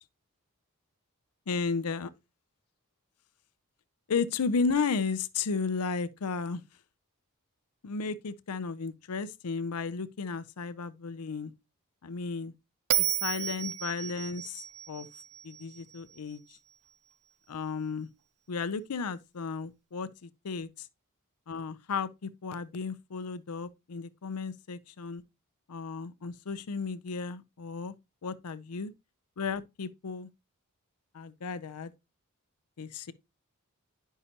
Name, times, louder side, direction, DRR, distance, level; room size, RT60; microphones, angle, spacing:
voice 1, 1.5-2.1 4.1-6.6 7.8-11.5 12.0-12.5 13.0-14.6 14.9-15.1 15.4-16.4 17.5-18.1 18.5-20.9 21.5-25.2 25.7-27.9 28.2-28.9 29.4-30.3 31.1-31.9 32.8-33.1, left 5 dB, 85° left, 0.6 m, -34 dB
Bell, 12.9-16.2, right 13 dB, 70° right, 0.4 m, -32 dB
9.8 x 5.5 x 2.8 m
head